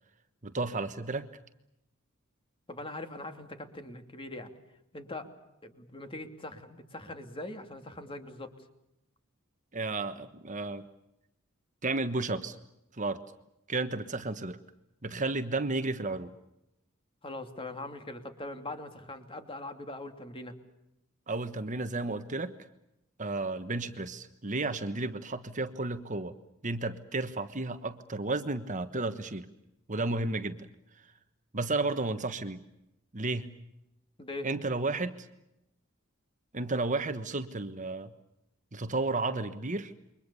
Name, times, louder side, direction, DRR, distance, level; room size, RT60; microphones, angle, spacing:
voice 1, 0.4-1.3 9.7-10.8 11.8-12.6 13.0-13.2 13.7-14.6 15.0-16.3 21.3-22.5 23.2-26.3 26.6-29.5 29.9-30.7 31.5-32.6 33.1-33.5 34.4-35.3 36.5-38.1 38.7-39.9, right 3 dB, 35° right, 10 dB, 1.3 m, -32 dB
voice 2, 2.7-4.5 4.9-5.3 5.6-8.5 17.2-20.6 34.2-34.5, left 2 dB, 25° left, 7 dB, 2.8 m, -41 dB
29.0 x 24.0 x 7.0 m, 0.86 s
head